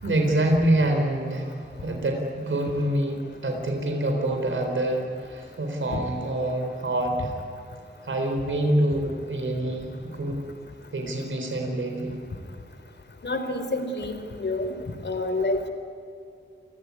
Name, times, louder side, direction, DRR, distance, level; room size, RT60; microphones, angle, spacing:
voice 1, 0.0-7.4 8.0-10.4 10.9-12.2, right 1 dB, 90° right, 3 dB, 4.1 m, -26 dB
voice 2, 13.2-14.7 15.0-15.7, left 2 dB, 65° left, 7 dB, 3.9 m, -28 dB
29.5 x 17.5 x 9.7 m, 2.4 s
wide cardioid pair, 85°, 20 cm